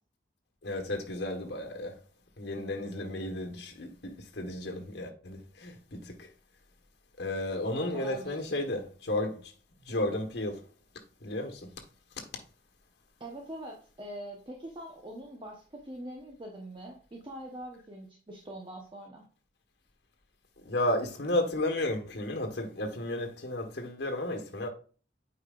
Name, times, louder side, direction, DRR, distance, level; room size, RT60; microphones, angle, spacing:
voice 1, 0.6-2.0 2.4-6.3 7.2-9.5 9.9-10.6 11.2-11.7 20.6-24.7, left 1 dB, 65° left, 1.3 m, -33 dB
voice 2, 7.8-8.6 13.2-19.2, right 1 dB, 25° right, 1.0 m, -43 dB
8.7 x 4.9 x 2.4 m
head